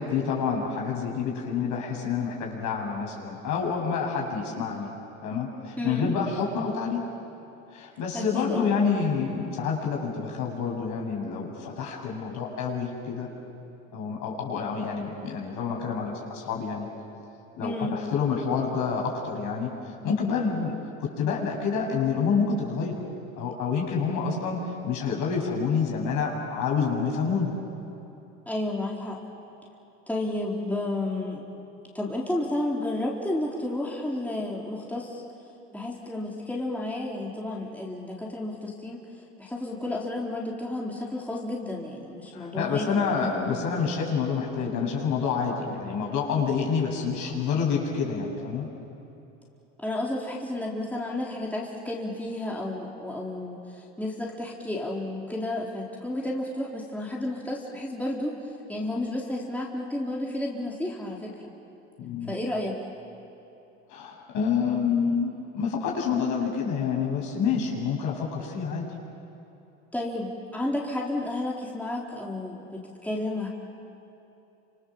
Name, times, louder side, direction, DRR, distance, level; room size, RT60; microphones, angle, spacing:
voice 1, 0.0-4.9 5.2-7.0 7.7-13.3 13.9-16.9 17.5-23.0 23.4-27.5 42.3-48.7 62.0-62.4 63.9-68.9, left 6 dB, 55° left, 0 dB, 7.6 m, -28 dB
voice 2, 5.8-6.1 8.1-8.7 17.6-17.9 28.5-29.2 30.1-31.5 31.9-35.2 35.7-39.0 39.4-43.4 49.8-58.4 58.7-61.5 62.2-62.8 69.9-73.5, left 1 dB, 5° left, -4 dB, 4.2 m, -32 dB
30.0 x 27.0 x 7.4 m, 2.9 s
hypercardioid pair, 85°, 35 cm